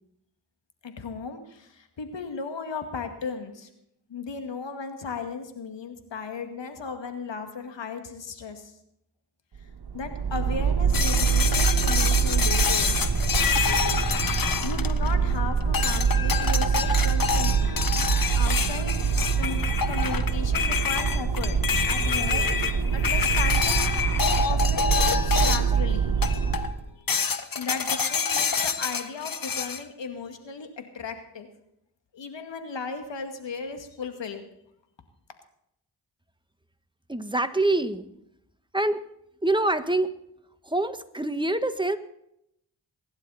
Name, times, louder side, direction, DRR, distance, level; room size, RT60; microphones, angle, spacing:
voice 1, 0.8-3.7 4.1-8.7 9.9-12.9 14.1-17.7 18.3-21.6 21.9-22.5 22.9-24.1 24.4-26.2 27.6-31.5 32.1-34.5, left 5 dB, 75° left, 6 dB, 2.2 m, -36 dB
sound 1, 9.5-26.8, right 6 dB, 60° right, 2.1 m, -25 dB
sound 2, 10.9-15.3 15.7-25.8 26.2-26.7 27.1-29.8, left 6 dB, 50° left, 1.4 m, -27 dB
voice 2, 37.1-38.0 38.7-39.0 39.4-40.1 40.6-42.0, right 2 dB, 10° right, 9 dB, 1.5 m, -25 dB
23.0 x 11.5 x 4.3 m, 0.77 s
cardioid pair, 45°, 44 cm